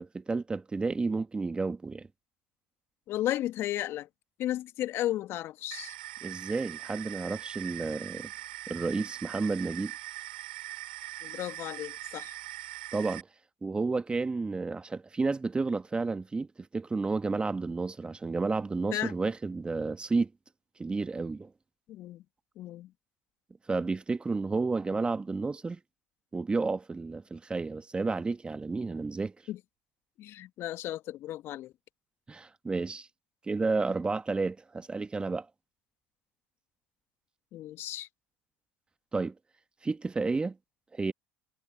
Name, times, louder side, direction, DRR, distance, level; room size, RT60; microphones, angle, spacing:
voice 1, 0.0-2.1 6.2-8.3 8.7-9.9 12.9-13.3 13.6-16.5 16.7-20.3 20.8-21.5 23.7-25.8 26.3-29.3 32.3-33.1 33.5-35.5 39.1-39.3 39.8-40.6 40.9-41.1, right 3 dB, 20° right, 1.5 m, -31 dB
voice 2, 3.1-4.1 4.4-5.9 11.2-12.4 18.9-19.1 21.9-22.2 22.6-22.9 29.5-29.6 30.2-31.7 37.5-38.1, left 14 dB, 55° left, 1.9 m, -34 dB
sound 1, 5.7-13.2, right 15 dB, 80° right, 6.6 m, -42 dB
hypercardioid pair, 70°, 5 cm